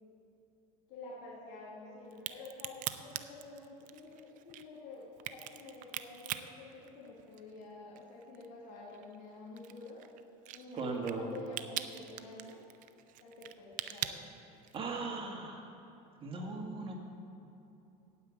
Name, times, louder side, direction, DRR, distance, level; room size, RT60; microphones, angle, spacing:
voice 1, 0.9-10.0 10.5-12.6 13.2-14.3 16.6-16.7, left 2 dB, 70° left, -5 dB, 2.6 m, -49 dB
Crack, 2.1-7.6 8.0-15.0, right 13 dB, 50° right, 0.6 m, -42 dB
voice 2, 10.8-11.3 14.7-15.7 16.2-17.0, right 3 dB, 30° right, 0 dB, 2.0 m, -38 dB
9.5 x 8.7 x 8.4 m, 3.0 s
supercardioid pair, 130°, 18 cm